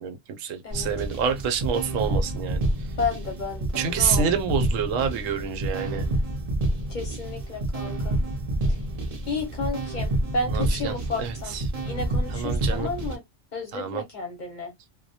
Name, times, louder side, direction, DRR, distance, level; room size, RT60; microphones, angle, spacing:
voice 1, 0.0-2.6 3.7-6.1 10.5-11.6 12.3-12.9 13.7-14.0, right 7 dB, 85° right, 1.0 m, -28 dB
sound 1, 0.7-13.1, right 1 dB, 45° right, 0.5 m, -28 dB
voice 2, 3.0-4.3 6.9-8.2 8.7-8.8 9.3-13.2 13.5-14.7, left 3 dB, 45° left, 0.7 m, -32 dB
2.2 x 2.1 x 2.7 m
omnidirectional pair, 1.3 m